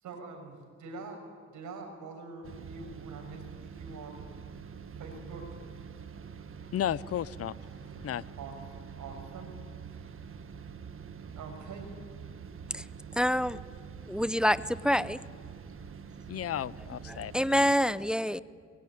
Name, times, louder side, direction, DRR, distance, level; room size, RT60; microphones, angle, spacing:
voice 1, 0.0-1.2 1.5-4.3 5.0-5.5 8.4-8.6 9.0-9.5 9.9-10.2 11.3-11.9 18.2-18.4, right 4 dB, 75° right, 4 dB, 6.6 m, -45 dB
sound 1, 2.4-17.7, right 6 dB, 45° right, 1.6 m, -45 dB
voice 2, 6.7-7.5 8.0-8.2 16.3-17.3, left 10 dB, 50° left, 20 dB, 0.7 m, -33 dB
voice 3, 13.1-13.6 14.1-15.2 17.1-18.4, equal, 5° right, 16 dB, 0.7 m, -27 dB
24.0 x 22.5 x 9.6 m, 2.2 s
cardioid pair, 90°, 30 cm